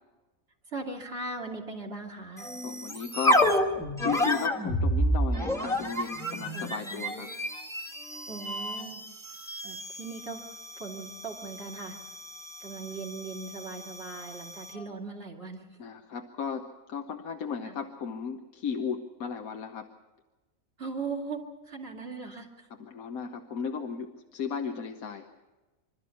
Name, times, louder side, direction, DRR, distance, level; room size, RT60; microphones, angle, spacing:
voice 1, 0.7-2.5 6.5-7.3 8.3-9.0 9.6-10.4 10.8-12.0 12.6-15.7 17.6-17.8 20.8-22.7, right 3 dB, 45° right, 1 dB, 2.8 m, -39 dB
sound 1, 2.4-14.9, equal, ahead, 1.6 m, -31 dB
voice 2, 2.6-3.5 4.0-7.3 15.8-19.9 22.8-25.3, left 6 dB, 80° left, 5 dB, 1.5 m, -35 dB
26.0 x 13.0 x 8.4 m, 1.2 s
omnidirectional pair, 1.5 m